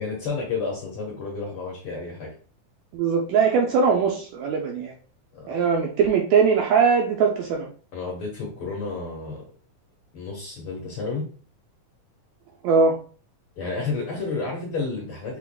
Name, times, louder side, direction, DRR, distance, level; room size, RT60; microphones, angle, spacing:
voice 1, 0.0-2.3 5.3-5.6 7.9-9.4 10.1-11.2 13.6-15.4, left 4 dB, 60° left, -2 dB, 1.5 m, -31 dB
voice 2, 2.9-4.9 5.5-7.7 12.6-12.9, right 5 dB, 75° right, 1 dB, 1.6 m, -21 dB
5.9 x 3.4 x 2.2 m, 0.41 s
omnidirectional pair, 3.6 m